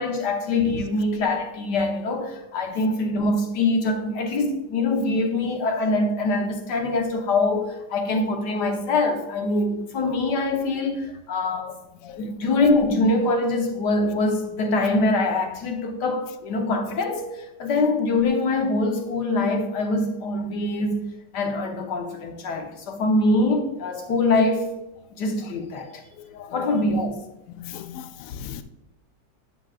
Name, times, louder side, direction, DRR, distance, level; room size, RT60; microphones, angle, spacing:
voice 1, 0.0-11.7 12.2-21.0 21.3-24.7 25.2-26.0 26.5-27.2, left 2 dB, 65° left, 1.5 m, -24 dB
voice 2, 26.2-26.9 27.6-28.6, left 9 dB, 85° left, 0.7 m, -38 dB
8.2 x 7.4 x 2.4 m
omnidirectional pair, 2.1 m